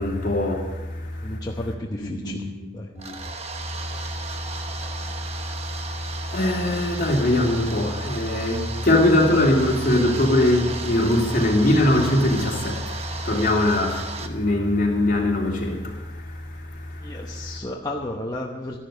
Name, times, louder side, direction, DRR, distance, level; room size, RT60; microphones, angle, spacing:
voice 1, 0.0-1.4 2.0-2.7 2.9-3.2 3.7-17.2, left 1 dB, 45° left, 2.8 m, -23 dB
voice 2, 1.2-2.9 17.0-18.8, left 1 dB, 20° left, 0.9 m, -33 dB
sound 1, 3.0-14.3, right 4 dB, 35° right, 1.0 m, -35 dB
13.0 x 11.5 x 6.6 m
head